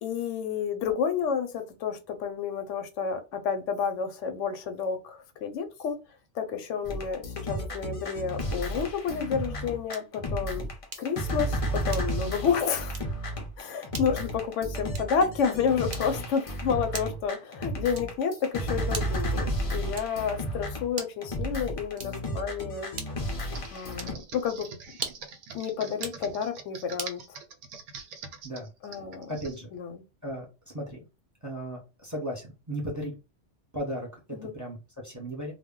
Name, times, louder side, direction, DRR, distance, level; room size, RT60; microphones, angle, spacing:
voice 1, 0.0-6.0 6.3-10.6 11.0-11.6 11.8-13.0 13.6-22.9 23.7-24.7 25.5-27.2 28.8-29.3 29.7-30.0 34.3-34.5, left 6 dB, 85° left, 0.9 m, -30 dB
sound 1, 6.9-24.1, equal, 45° left, 0.4 m, -33 dB
sound 2, 9.9-10.2 10.9-11.2 11.9-12.3 12.9-13.2 13.9-14.2 14.9-15.3 15.9-16.3 16.9-17.3 17.9-18.3 18.9-19.3 19.9-20.3 20.9-21.3 21.9-22.3 22.9-23.4 23.9-24.2 24.9-25.4 25.9-26.3 27.0-27.2, right 5 dB, 55° right, 0.6 m, -40 dB
Computer keyboard, 23.5-29.6, right 5 dB, 80° right, 0.9 m, -44 dB
voice 2, 29.3-29.7 30.2-30.5 30.7-31.0 31.4-33.1 33.7-35.5, equal, 15° right, 0.7 m, -36 dB
2.2 x 2.1 x 3.6 m
omnidirectional pair, 1.2 m